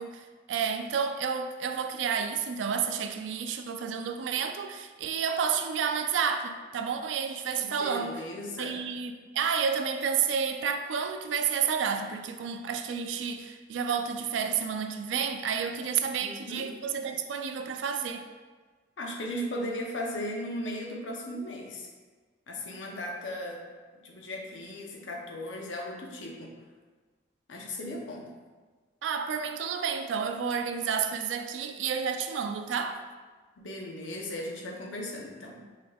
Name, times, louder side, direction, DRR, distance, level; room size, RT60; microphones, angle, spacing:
voice 1, 0.0-8.2 8.6-18.2 29.0-33.0, right 6 dB, 85° right, 6 dB, 0.4 m, -30 dB
voice 2, 7.6-8.8 16.2-16.7 19.0-21.9 22.5-23.7 24.0-26.5 27.5-28.3 33.6-35.6, left 1 dB, 85° left, 0 dB, 0.7 m, -37 dB
5.6 x 3.4 x 2.3 m, 1.4 s
head